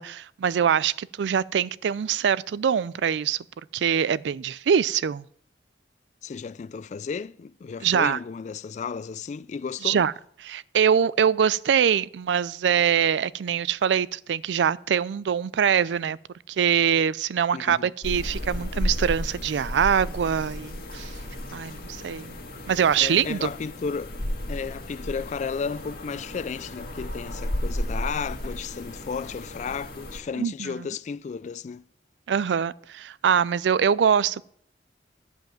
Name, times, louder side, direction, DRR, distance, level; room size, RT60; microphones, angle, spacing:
voice 1, 0.0-3.4 3.7-5.2 7.8-8.2 9.8-10.1 10.4-16.2 16.5-21.1 21.5-22.3 22.7-23.5 30.4-30.9 32.3-34.4, right 8 dB, 80° right, 0.4 m, -23 dB
voice 2, 6.2-10.0 17.5-17.9 23.0-24.1 24.5-31.9, left 5 dB, 40° left, 0.3 m, -33 dB
sound 1, 18.0-30.2, left 1 dB, 60° left, 1.8 m, -33 dB
11.5 x 5.3 x 7.5 m
head